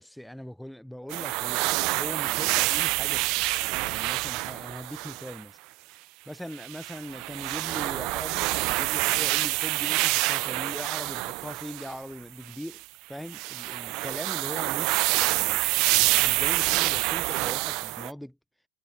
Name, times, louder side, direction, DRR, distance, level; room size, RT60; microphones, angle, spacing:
voice 1, 0.0-5.6 6.3-18.4, equal, ahead, 1.0 m, -41 dB
sound 1, 1.1-5.4 6.5-12.0 12.5-12.8 13.3-18.1, right 24 dB, 40° right, 0.4 m, -27 dB
figure-of-eight pair, 90°, 0 cm